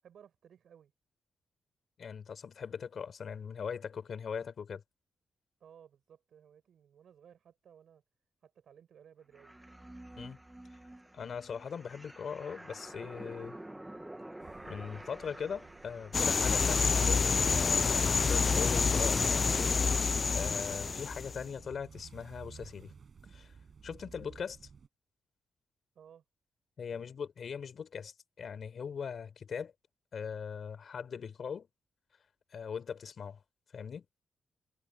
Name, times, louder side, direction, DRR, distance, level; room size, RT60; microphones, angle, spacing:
voice 1, 0.0-0.9 5.6-8.0 8.4-9.6 25.9-26.2 26.9-27.1, right 8 dB, 70° right, 6.2 m, -58 dB
voice 2, 2.0-4.8 10.2-10.4 11.1-13.6 14.7-19.6 20.3-22.9 23.3-23.5 23.8-24.6 26.8-29.7 30.1-31.7 32.5-33.4 33.7-34.1, left 6 dB, 60° left, 4.2 m, -40 dB
sound 1, 9.3-21.0, right 1 dB, 10° right, 1.4 m, -48 dB
sound 2, 14.4-24.9, right 6 dB, 50° right, 8.0 m, -55 dB
sound 3, 16.1-21.4, left 5 dB, 40° left, 0.4 m, -28 dB
cardioid pair, 90°, 0 cm